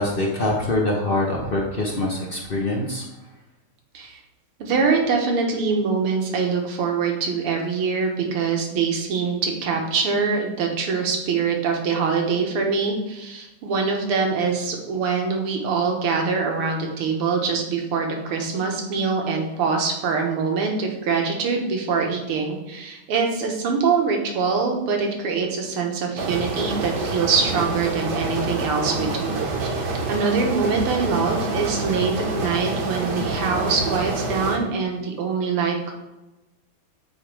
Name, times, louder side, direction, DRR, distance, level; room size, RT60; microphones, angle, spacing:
voice 1, 0.0-3.0, left 1 dB, 65° left, -1 dB, 0.5 m, -24 dB
voice 2, 4.6-29.8 30.1-35.9, right 5 dB, 80° right, 2 dB, 2.1 m, -24 dB
sound 1, 26.2-34.6, right 3 dB, 55° right, 1.5 m, -27 dB
9.4 x 3.5 x 4.8 m, 1.0 s
omnidirectional pair, 2.4 m